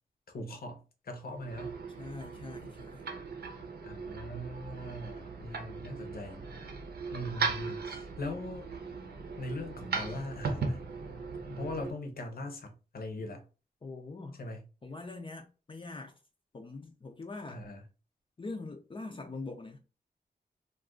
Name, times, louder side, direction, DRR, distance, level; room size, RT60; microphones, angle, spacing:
voice 1, 0.3-1.8 3.8-6.4 7.1-8.7 9.4-10.8 11.5-13.5 14.4-14.6 17.5-17.8, left 1 dB, 65° left, 0.8 m, -40 dB
sound 1, 1.3-11.9, right 4 dB, 70° right, 0.7 m, -38 dB
voice 2, 2.0-3.1 13.8-14.4 14.8-16.2 16.5-17.6 18.4-19.8, left 3 dB, 30° left, 0.5 m, -43 dB
2.4 x 2.3 x 3.6 m
wide cardioid pair, 115°, 17 cm